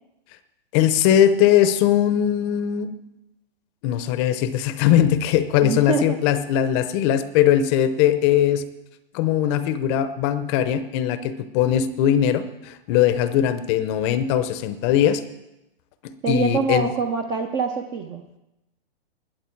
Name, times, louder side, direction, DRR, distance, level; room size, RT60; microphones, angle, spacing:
voice 1, 0.7-2.9 3.8-8.6 9.1-15.2 16.3-16.9, left 10 dB, 25° left, 12 dB, 0.7 m, -20 dB
voice 2, 5.6-6.2 16.2-18.2, right 5 dB, 15° right, 6 dB, 0.5 m, -25 dB
21.0 x 8.0 x 4.5 m, 0.94 s
hypercardioid pair, 145°, 31 cm